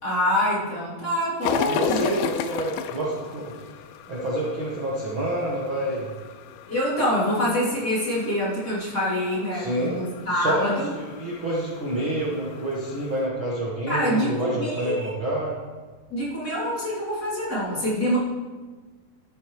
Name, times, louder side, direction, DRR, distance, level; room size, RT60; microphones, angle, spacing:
voice 1, 0.0-2.1 6.7-10.9 13.9-15.1 16.1-18.2, equal, 25° left, -9 dB, 3.2 m, -25 dB
sound 1, 1.4-13.3, left 8 dB, 85° left, 2.4 m, -35 dB
voice 2, 1.7-6.1 9.5-10.0 10.3-15.6, right 1 dB, 45° right, -6 dB, 1.9 m, -28 dB
13.0 x 10.0 x 3.2 m, 1.4 s
omnidirectional pair, 4.2 m